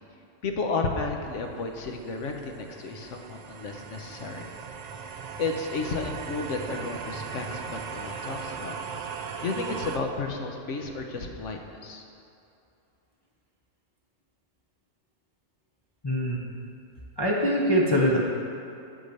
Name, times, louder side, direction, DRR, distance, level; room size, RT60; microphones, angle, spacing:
voice 1, 0.4-4.5 5.4-8.8 9.4-12.0, left 3 dB, 70° left, 3 dB, 1.2 m, -32 dB
sound 1, 1.2-10.0, right 6 dB, 60° right, 0.4 m, -38 dB
voice 2, 16.0-16.7 17.2-18.2, equal, 25° left, -4 dB, 0.8 m, -24 dB
8.4 x 6.2 x 6.6 m, 2.7 s
omnidirectional pair, 1.3 m